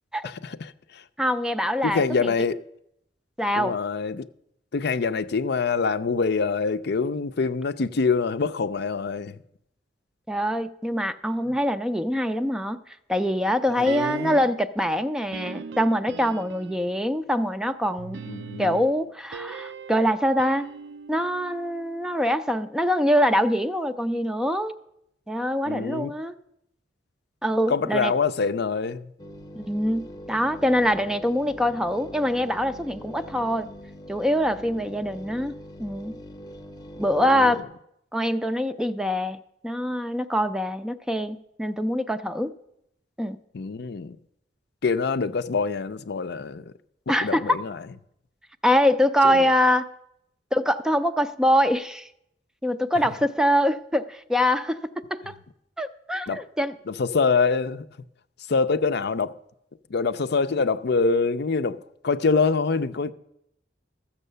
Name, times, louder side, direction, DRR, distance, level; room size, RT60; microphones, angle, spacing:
voice 1, 0.2-1.0 1.8-2.6 3.6-4.3 4.7-9.4 13.8-14.4 18.3-18.8 25.7-26.1 27.7-29.1 37.2-37.6 43.5-44.2 44.8-46.6 47.1-47.8 49.2-49.5 56.3-56.4 56.9-57.8 58.5-59.4 59.9-61.8 62.0-63.1, left 4 dB, 65° left, 0.5 m, -25 dB
voice 2, 1.2-2.3 3.4-3.8 10.3-12.8 13.1-18.2 18.6-20.7 21.1-24.7 25.3-26.3 27.4-28.1 29.6-33.7 34.1-35.5 35.8-36.1 37.0-37.6 38.1-39.4 39.6-42.5 43.2-43.4 47.1-47.6 48.6-49.9 50.5-52.1 52.6-55.3 55.8-56.7, equal, 5° right, 0.4 m, -24 dB
sound 1, 13.9-14.7 15.3-16.9 18.0-22.2 22.5-22.6, right 6 dB, 65° right, 0.4 m, -39 dB
sound 2, 29.2-37.6, equal, 20° left, 0.8 m, -43 dB
13.5 x 7.3 x 6.7 m
head